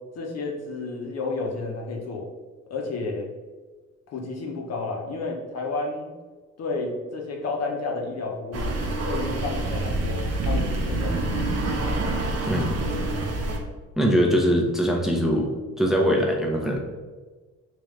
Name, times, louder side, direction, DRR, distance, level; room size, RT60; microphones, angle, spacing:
voice 1, 0.0-2.3 2.7-3.3 4.1-6.1 6.6-8.7 9.0-11.4 13.1-13.4, left 3 dB, 60° left, 1 dB, 0.8 m, -31 dB
sound 1, 8.5-13.6, right 2 dB, 55° right, 0.7 m, -27 dB
voice 2, 12.5-12.8 14.0-15.5 15.8-16.8, equal, ahead, -1 dB, 0.6 m, -22 dB
3.6 x 3.0 x 3.2 m, 1.3 s
cardioid pair, 90°, 30 cm